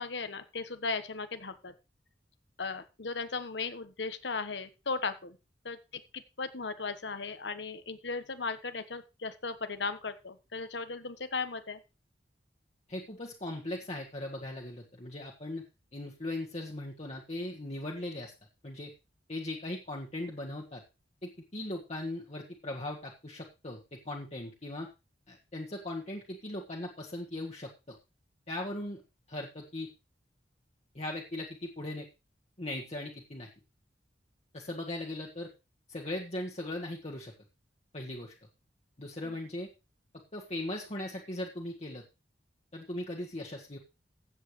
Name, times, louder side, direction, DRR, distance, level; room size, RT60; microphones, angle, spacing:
voice 1, 0.0-1.7 2.6-5.4 5.6-11.8 39.2-39.3, left 4 dB, 80° left, 10 dB, 1.2 m, -37 dB
voice 2, 12.9-15.6 15.9-18.3 18.6-18.9 19.3-20.8 21.2-24.9 25.3-28.0 28.5-29.0 29.3-29.9 30.9-32.1 32.6-33.5 34.5-35.5 35.9-37.3 37.9-38.3 39.0-39.7 40.1-42.0 42.7-43.8, left 1 dB, 35° left, -1 dB, 1.5 m, -39 dB
15.0 x 8.0 x 3.2 m, 0.27 s
head